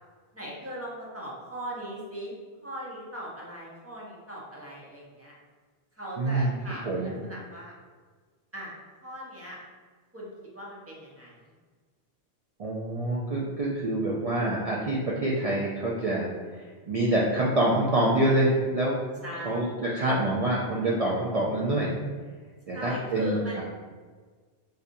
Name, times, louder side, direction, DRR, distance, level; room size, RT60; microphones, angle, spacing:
voice 1, 0.3-2.4 2.6-5.3 6.0-7.7 8.5-8.7 9.0-9.6 10.1-10.3 10.5-11.3 19.2-19.7 22.7-23.6, equal, 15° right, -5 dB, 0.6 m, -39 dB
voice 2, 6.2-6.5 6.8-7.2 12.6-16.3 16.5-18.9 19.4-21.9 22.7-23.6, right 1 dB, 65° right, -5 dB, 0.3 m, -26 dB
4.1 x 2.5 x 2.5 m, 1.5 s
omnidirectional pair, 1.1 m